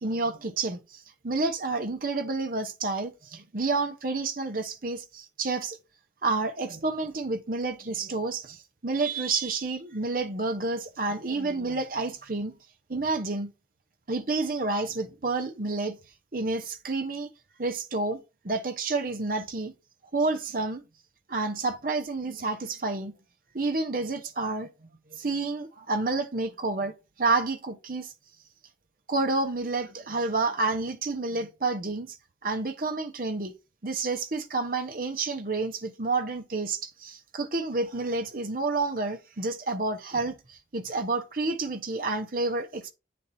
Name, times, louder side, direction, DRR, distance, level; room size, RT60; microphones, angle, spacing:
voice 1, 0.0-5.8 6.2-12.5 12.9-13.5 14.1-16.0 16.3-17.3 17.6-19.7 20.1-20.8 21.3-23.1 23.5-24.7 25.1-26.9 27.2-28.1 29.1-32.2 32.4-33.5 33.8-42.9, right 3 dB, 50° right, 0.9 m, -29 dB
8.3 x 4.3 x 4.2 m
head